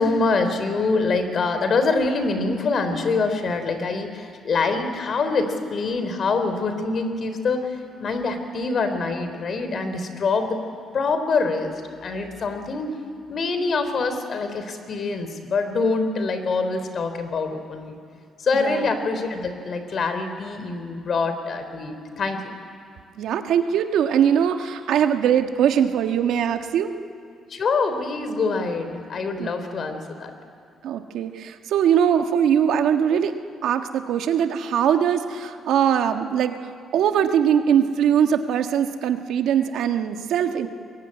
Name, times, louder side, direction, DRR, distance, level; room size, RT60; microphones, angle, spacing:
voice 1, 0.0-10.6 10.9-11.7 12.0-12.9 13.3-18.0 18.4-22.5 27.5-30.3, left 4 dB, 55° left, 9 dB, 3.5 m, -25 dB
voice 2, 18.5-18.9 23.2-26.9 29.4-29.5 30.8-33.3 33.6-36.5 36.9-40.7, right 8 dB, 80° right, 6 dB, 1.5 m, -21 dB
23.0 x 22.0 x 9.8 m, 2.3 s
cardioid pair, 90°, 0 cm